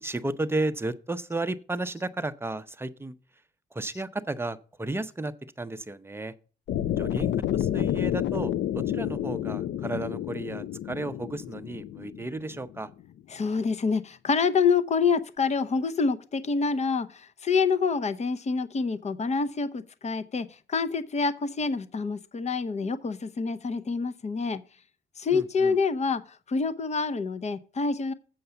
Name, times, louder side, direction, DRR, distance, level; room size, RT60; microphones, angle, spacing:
voice 1, 0.0-3.2 3.7-6.3 7.0-12.9 25.3-25.8, right 2 dB, 10° right, 0.6 m, -33 dB
sound 1, 6.7-12.8, left 11 dB, 65° left, 0.5 m, -30 dB
voice 2, 13.3-24.6 25.2-26.2 26.5-28.1, left 5 dB, 35° left, 0.7 m, -27 dB
7.9 x 5.4 x 6.8 m
cardioid pair, 90°, 20 cm